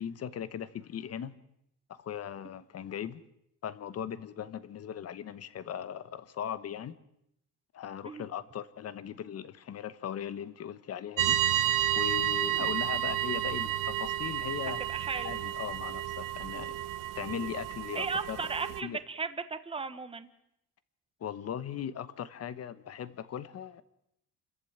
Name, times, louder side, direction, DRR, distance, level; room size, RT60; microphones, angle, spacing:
voice 1, 0.0-1.4 1.9-3.2 3.6-7.0 7.7-11.4 11.9-14.9 15.2-16.7 17.1-18.5 18.8-19.0 21.2-23.8, left 9 dB, 40° left, 1.2 m, -38 dB
sound 1, 11.2-18.8, right 11 dB, 60° right, 1.1 m, -31 dB
voice 2, 14.9-15.4 17.9-20.3, right 4 dB, 15° right, 1.2 m, -36 dB
29.0 x 14.0 x 8.9 m
cardioid pair, 175°, 36 cm